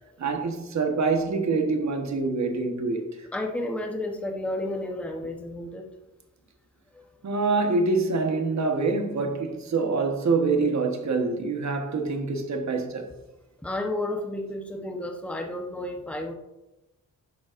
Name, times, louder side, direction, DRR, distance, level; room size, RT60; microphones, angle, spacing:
voice 1, 0.2-3.3 7.2-13.1, right 3 dB, 55° right, 1.2 m, -25 dB
voice 2, 3.3-5.9 6.9-7.1 13.6-16.3, left 1 dB, 5° left, 0.9 m, -32 dB
10.5 x 7.1 x 2.5 m
wide cardioid pair, 120°, 34 cm